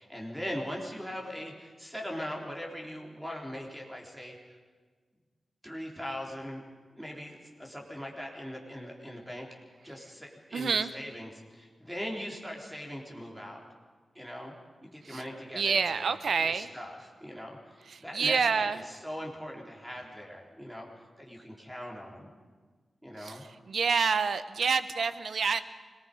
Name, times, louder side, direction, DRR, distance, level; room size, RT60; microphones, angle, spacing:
voice 1, 0.0-4.6 5.6-6.6 6.9-9.5 9.8-13.6 14.1-14.5 14.8-20.9 21.2-22.3 23.0-23.4, equal, 5° right, -1 dB, 3.7 m, -40 dB
voice 2, 10.5-10.9 15.1-15.2 15.5-16.7 17.9-18.8 23.2-23.4 23.7-25.6, right 5 dB, 80° right, 12 dB, 0.9 m, -28 dB
25.5 x 19.0 x 5.4 m, 1.5 s
wide cardioid pair, 100°, 0 cm